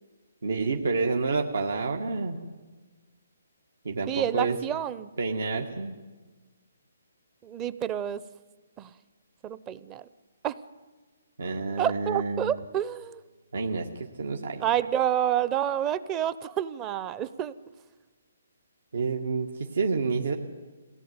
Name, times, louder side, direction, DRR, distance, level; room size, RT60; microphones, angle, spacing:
voice 1, 0.4-2.4 3.8-4.6 5.2-6.0 11.4-12.5 13.5-14.6 18.9-20.4, right 4 dB, 80° right, 2 dB, 1.9 m, -29 dB
voice 2, 4.1-5.1 7.4-8.2 8.8-8.9 9.4-10.1 10.4-10.6 11.8-13.2 14.6-17.5, right 10 dB, 15° right, 16 dB, 0.6 m, -28 dB
22.0 x 17.0 x 9.6 m, 1.3 s
hypercardioid pair, 160°, 0 cm